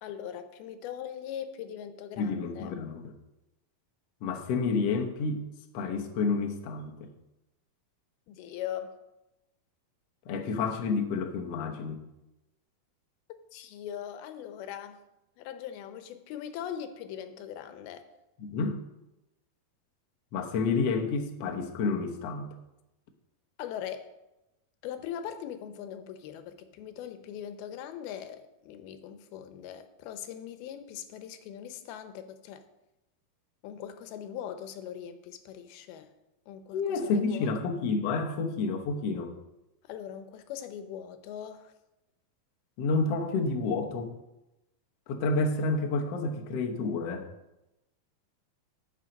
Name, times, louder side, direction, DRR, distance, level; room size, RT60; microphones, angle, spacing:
voice 1, 0.0-2.8 8.3-9.0 13.5-15.0 15.4-18.0 23.6-24.1 24.8-32.6 33.6-36.1 36.5-37.5 39.9-41.7, left 9 dB, 85° left, 2.7 m, -40 dB
voice 2, 2.2-3.1 4.2-5.4 5.7-7.1 10.3-12.0 18.4-18.8 20.3-22.5 36.7-39.4 42.8-44.1 45.1-47.3, left 4 dB, 65° left, 1.6 m, -29 dB
12.5 x 7.1 x 5.2 m
omnidirectional pair, 4.3 m